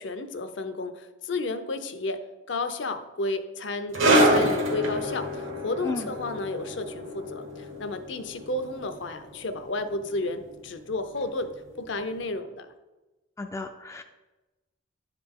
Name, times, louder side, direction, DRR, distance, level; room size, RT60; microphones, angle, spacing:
voice 1, 0.0-2.2 2.5-12.7, left 2 dB, 65° left, 9 dB, 0.6 m, -32 dB
sound 1, 3.9-10.9 11.2-11.4 12.2-12.3, equal, 80° right, 1.4 m, -27 dB
voice 2, 13.4-14.0, left 3 dB, 15° left, 5 dB, 0.3 m, -33 dB
10.5 x 4.9 x 3.7 m, 1.1 s
head